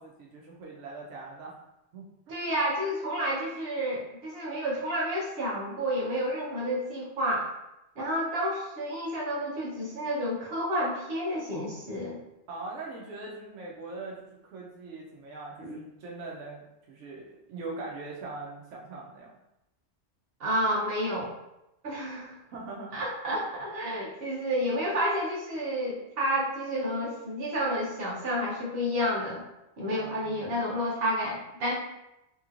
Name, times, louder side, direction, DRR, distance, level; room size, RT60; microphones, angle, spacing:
voice 1, 0.0-1.6 1.9-2.5 12.5-19.3 22.5-23.0 29.8-30.4, right 3 dB, 85° right, -3 dB, 1.0 m, -42 dB
voice 2, 2.3-7.5 8.0-12.2 15.6-15.8 20.4-21.3 21.8-22.3 22.9-29.4 29.8-31.7, equal, 55° right, -4 dB, 1.0 m, -30 dB
3.0 x 2.9 x 2.4 m, 0.90 s
omnidirectional pair, 1.2 m